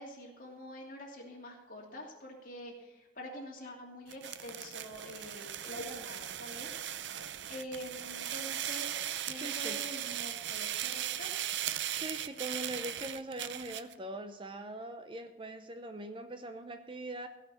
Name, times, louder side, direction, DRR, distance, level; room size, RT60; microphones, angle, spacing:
voice 1, 0.0-6.7 7.0-11.3, equal, 45° left, -1 dB, 2.7 m, -46 dB
sound 1, 4.1-13.9, right 11 dB, 70° right, 0.5 m, -38 dB
voice 2, 9.4-9.8 11.9-17.3, right 1 dB, 25° right, 8 dB, 0.7 m, -42 dB
16.5 x 5.8 x 7.1 m, 0.99 s
head